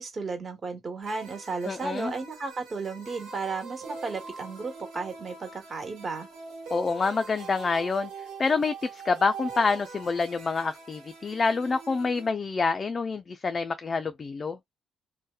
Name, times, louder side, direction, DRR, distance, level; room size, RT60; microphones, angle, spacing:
voice 1, 0.0-6.3, right 4 dB, 35° right, 1.2 m, -34 dB
sound 1, 1.0-12.3, right 4 dB, 90° right, 1.0 m, -43 dB
voice 2, 1.7-2.1 6.7-8.1 8.4-14.6, left 4 dB, 35° left, 0.3 m, -27 dB
2.8 x 2.1 x 2.2 m
cardioid pair, 90°, 0 cm